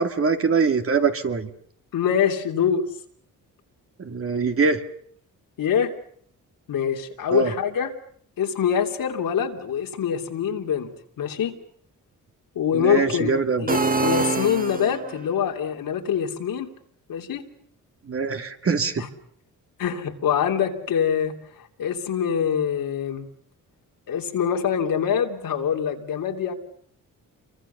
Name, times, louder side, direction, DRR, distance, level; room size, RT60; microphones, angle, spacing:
voice 1, 0.0-1.5 4.0-4.8 7.3-7.5 12.7-13.7 18.1-19.0, right 5 dB, 40° right, 6 dB, 2.5 m, -23 dB
voice 2, 1.9-2.8 5.6-5.9 6.7-7.9 8.4-10.9 11.2-11.6 12.5-13.3 13.6-16.7 17.1-17.5 19.0-19.1 19.8-21.3 21.8-23.3 24.1-26.5, left 8 dB, 80° left, 3 dB, 3.2 m, -24 dB
sound 1, 13.7-15.3, right 3 dB, 25° right, 1.8 m, -24 dB
28.5 x 24.0 x 6.9 m, 0.63 s
cardioid pair, 115°, 34 cm